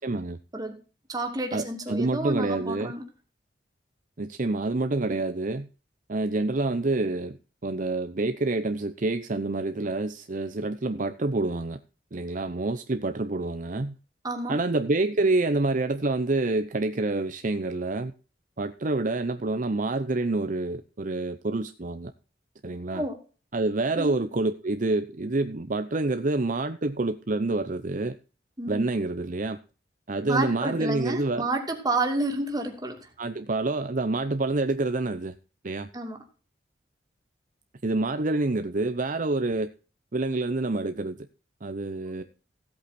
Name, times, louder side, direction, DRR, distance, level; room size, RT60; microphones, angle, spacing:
voice 1, 0.0-0.4 1.5-2.9 4.2-5.7 6.1-7.4 7.6-11.8 12.1-14.0 14.5-18.1 18.6-22.1 22.6-23.0 23.5-28.1 28.7-29.6 30.1-31.5 33.2-35.3 35.6-35.9 37.8-39.7 40.1-41.3 41.6-42.2, right 2 dB, 50° right, 0.7 m, -27 dB
voice 2, 1.1-3.0 14.2-14.6 22.9-23.2 23.9-24.2 28.6-28.8 30.3-33.0 35.9-36.2 42.1-42.2, right 2 dB, 20° right, 2.6 m, -30 dB
16.0 x 8.6 x 4.3 m
head